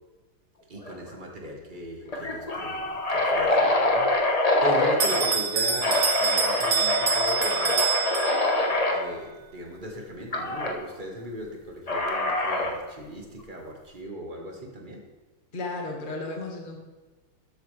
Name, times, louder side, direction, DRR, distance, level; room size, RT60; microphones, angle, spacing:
voice 1, 0.7-7.8 8.6-15.0, right 1 dB, 25° right, 1 dB, 1.4 m, -38 dB
sound 1, 0.9-1.1 1.4-1.5 2.1-5.4 5.8-9.0 10.3-10.7 11.9-12.8, left 2 dB, 45° left, 0.5 m, -25 dB
Bell, 5.0-8.7, right 6 dB, 55° right, 1.3 m, -26 dB
voice 2, 15.5-16.8, left 2 dB, 25° left, 1 dB, 1.4 m, -34 dB
13.0 x 8.1 x 3.3 m, 1.2 s
omnidirectional pair, 2.3 m